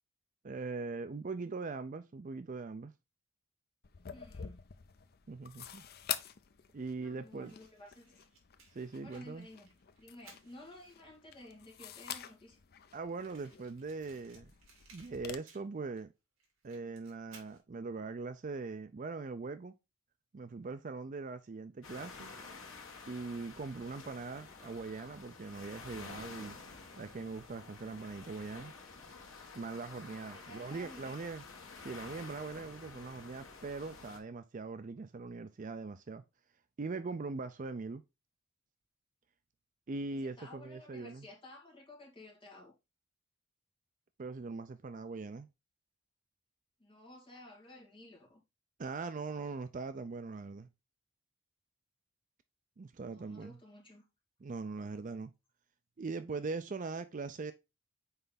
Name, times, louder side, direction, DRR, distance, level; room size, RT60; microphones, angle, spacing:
voice 1, 0.4-2.9 5.3-5.8 6.7-7.5 8.7-9.5 12.9-14.5 14.9-16.1 16.6-19.7 20.3-22.3 23.1-26.6 27.0-28.7 29.5-31.4 31.8-36.2 36.8-38.0 39.9-41.3 44.2-45.5 48.8-50.7 52.8-53.6 54.4-55.3 56.0-57.5, right 4 dB, 35° right, 0.4 m, -41 dB
sound 1, 3.8-15.4, left 9 dB, 45° left, 0.5 m, -47 dB
voice 2, 4.1-4.6 7.0-8.2 9.0-9.7 10.0-12.6 30.2-31.3 40.1-42.7 46.8-48.4 53.0-54.0, left 1 dB, 25° left, 2.3 m, -54 dB
Fire, 7.4-11.2 11.9-12.0 12.2-12.3 12.5-12.6 13.1-16.0 16.4-17.6, right 4 dB, 70° right, 2.5 m, -62 dB
sound 2, 21.8-34.2, left 4 dB, 70° left, 1.5 m, -50 dB
5.6 x 4.6 x 4.0 m
head